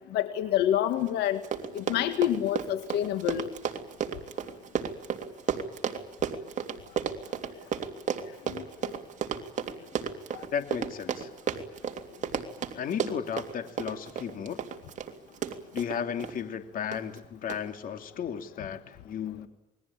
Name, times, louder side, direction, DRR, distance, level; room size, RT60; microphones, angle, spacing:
voice 1, 0.1-1.4 1.7-3.5 8.5-8.6 10.3-10.4, left 12 dB, 85° left, 9 dB, 1.9 m, -27 dB
Run, 1.1-1.2 1.4-16.3 16.9-17.2 17.5-17.6, right 7 dB, 45° right, 3.2 m, -33 dB
voice 2, 10.5-11.3 12.7-14.6 15.7-19.5, left 8 dB, 55° left, 7 dB, 2.8 m, -34 dB
28.0 x 21.5 x 8.8 m, 0.98 s
cardioid pair, 110°, 17 cm